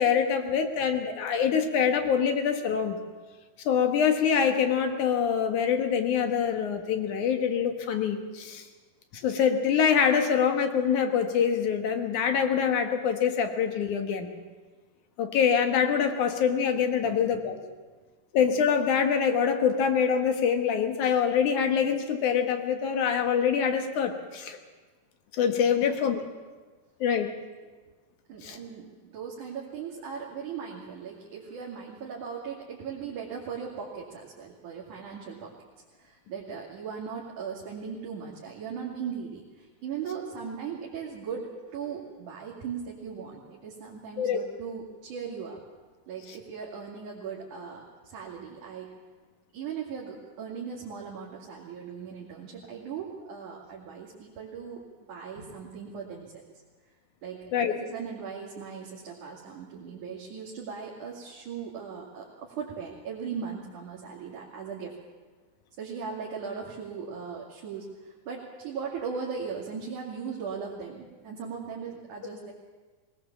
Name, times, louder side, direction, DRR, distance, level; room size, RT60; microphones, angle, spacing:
voice 1, 0.0-3.0 3.7-8.7 9.1-14.3 15.2-17.6 18.3-24.6 25.3-26.2 27.0-27.3 28.4-28.6 44.2-44.4 57.5-57.7, left 7 dB, 75° left, 6 dB, 2.8 m, -25 dB
voice 2, 17.0-17.4 25.8-26.0 28.3-35.5 36.0-45.6 46.1-48.9 49.5-54.8 55.1-56.4 57.2-64.9 65.8-72.5, right 6 dB, 75° right, -4 dB, 3.7 m, -38 dB
20.5 x 19.0 x 7.3 m, 1.3 s
omnidirectional pair, 3.6 m